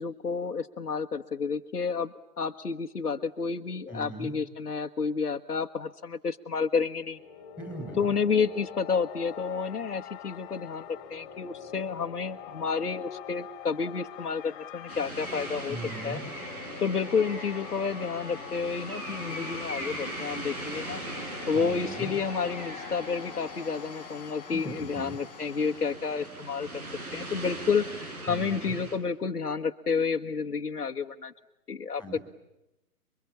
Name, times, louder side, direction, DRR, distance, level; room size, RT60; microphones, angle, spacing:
voice 1, 0.0-7.2 8.0-15.8 16.0-16.2 16.8-21.0 21.5-26.8 27.1-31.3 31.7-32.2, left 5 dB, 75° left, 4 dB, 1.6 m, -30 dB
voice 2, 3.9-4.3 7.6-8.2 15.7-16.2 21.5-22.1 24.5-25.2 28.3-28.8 32.0-32.2, right 1 dB, 5° right, 5 dB, 7.5 m, -39 dB
sound 1, 6.9-26.8, left 10 dB, 25° left, 3.0 m, -45 dB
sound 2, 14.9-29.0, right 1 dB, 65° right, 7.3 m, -40 dB
29.0 x 24.0 x 8.6 m, 0.89 s
figure-of-eight pair, 130°, 47 cm